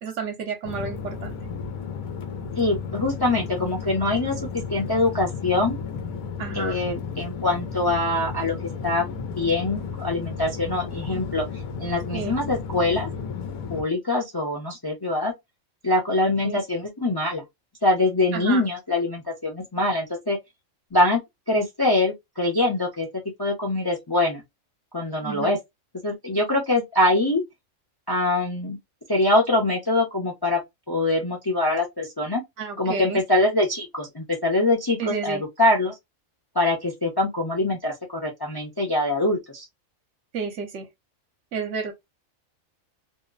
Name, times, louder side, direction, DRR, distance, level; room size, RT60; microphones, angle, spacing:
voice 1, 0.0-1.4 6.4-6.8 12.1-12.4 16.4-16.6 18.3-18.7 25.2-25.6 32.6-33.2 35.0-35.4 40.3-40.9 41.5-41.9, right 5 dB, 65° right, 1.0 m, -31 dB
sound 1, 0.6-13.8, left 5 dB, 90° left, 1.1 m, -33 dB
voice 2, 2.6-5.8 6.5-11.5 11.8-13.1 13.7-15.3 15.8-17.4 17.8-20.4 20.9-21.2 21.5-23.1 23.4-24.4 24.9-25.6 26.0-27.4 28.1-28.8 29.1-30.6 30.9-32.4 32.8-35.9 36.5-39.6, left 2 dB, 30° left, 0.5 m, -24 dB
2.8 x 2.0 x 2.4 m
omnidirectional pair, 1.4 m